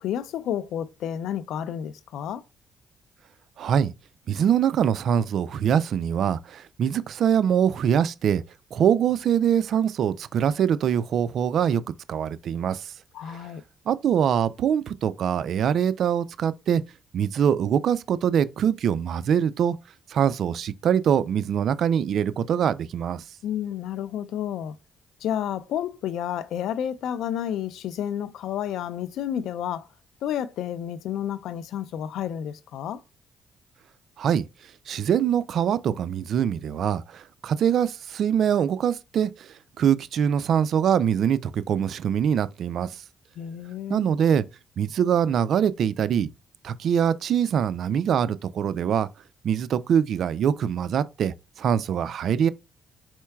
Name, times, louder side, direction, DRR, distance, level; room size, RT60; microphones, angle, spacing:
voice 1, 0.0-2.4 13.1-13.6 23.4-24.7 25.2-29.9 30.2-33.0 43.4-44.1, left 10 dB, 80° left, 0.4 m, -30 dB
voice 2, 3.6-3.9 4.3-8.4 8.7-11.8 12.1-12.9 13.3-13.4 13.9-16.8 17.1-19.8 20.1-23.2 34.2-34.4 34.9-43.0 43.9-44.4 44.8-46.3 46.6-49.1 49.4-52.5, right 8 dB, 65° right, 0.3 m, -23 dB
4.5 x 4.4 x 2.3 m
cardioid pair, 90°, 0 cm